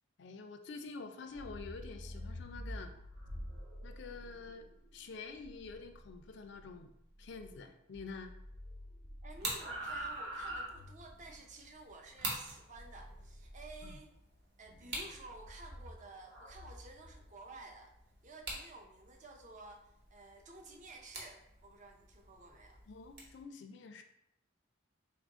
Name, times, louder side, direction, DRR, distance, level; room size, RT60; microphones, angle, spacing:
voice 1, 0.2-2.9 3.8-4.7 4.9-6.9 7.2-8.3 13.8-14.0 22.9-24.0, left 4 dB, 60° left, 6 dB, 0.4 m, -47 dB
sound 1, 1.2-7.7 7.9-11.3 12.7-14.0 14.7-17.3, equal, 80° right, 1.1 m, -47 dB
voice 2, 9.2-14.1 14.6-17.9 18.2-22.8, right 2 dB, 40° right, 3 dB, 0.5 m, -53 dB
sound 2, 9.3-23.4, right 2 dB, 55° right, 1.0 m, -48 dB
3.8 x 2.4 x 3.6 m, 0.79 s
head